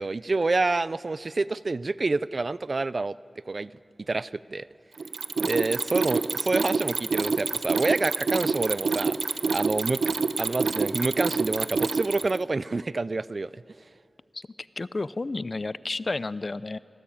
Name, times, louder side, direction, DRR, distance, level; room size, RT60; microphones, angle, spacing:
voice 1, 0.0-3.2 3.5-3.7 4.1-4.7 5.4-9.2 9.5-10.0 10.4-13.6, right 3 dB, 50° right, 18 dB, 0.5 m, -27 dB
Mechanisms, 5.0-12.4, right 4 dB, 85° right, 0.9 m, -27 dB
voice 2, 14.8-16.8, left 3 dB, 45° left, 16 dB, 0.6 m, -31 dB
25.5 x 18.5 x 8.8 m, 2.8 s
wide cardioid pair, 65°, 0 cm